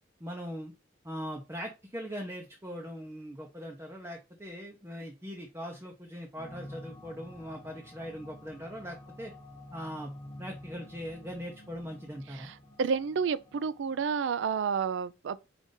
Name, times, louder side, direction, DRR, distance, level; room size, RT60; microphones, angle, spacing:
voice 1, 0.2-0.7 1.0-9.3 9.7-10.1 10.4-12.5, equal, 10° right, 0.6 m, -40 dB
sound 1, 6.4-14.7, left 1 dB, 25° left, 0.9 m, -50 dB
voice 2, 12.8-15.5, right 6 dB, 60° right, 0.3 m, -30 dB
5.1 x 2.5 x 3.8 m
head